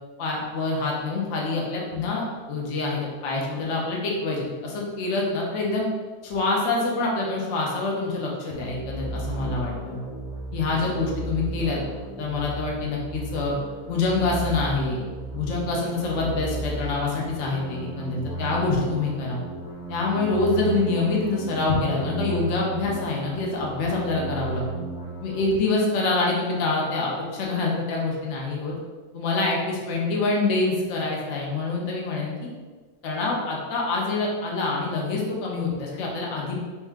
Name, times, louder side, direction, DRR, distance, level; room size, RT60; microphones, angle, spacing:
voice 1, 0.2-5.9 6.2-10.0 10.5-11.8 12.2-13.6 13.9-15.1 15.3-19.4 19.9-24.6 25.2-28.7 29.1-32.5 33.0-36.6, left 3 dB, 55° left, -2 dB, 1.0 m, -26 dB
sound 1, 8.5-25.6, right 2 dB, 5° right, 0.5 m, -34 dB
4.4 x 2.7 x 3.5 m, 1.4 s
omnidirectional pair, 1.7 m